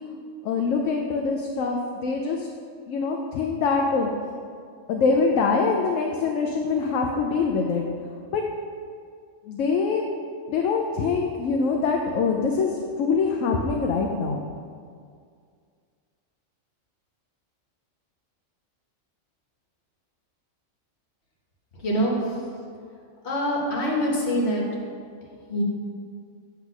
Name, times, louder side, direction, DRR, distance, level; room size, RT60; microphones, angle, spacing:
voice 1, 0.4-2.5 2.9-4.1 4.9-7.8 8.3-8.4 9.5-10.0 10.5-14.4, left 4 dB, 75° left, 1 dB, 0.9 m, -24 dB
voice 2, 23.2-24.6 25.5-25.6, equal, 55° left, -3 dB, 1.6 m, -24 dB
8.2 x 3.5 x 6.0 m, 2.2 s
omnidirectional pair, 1.4 m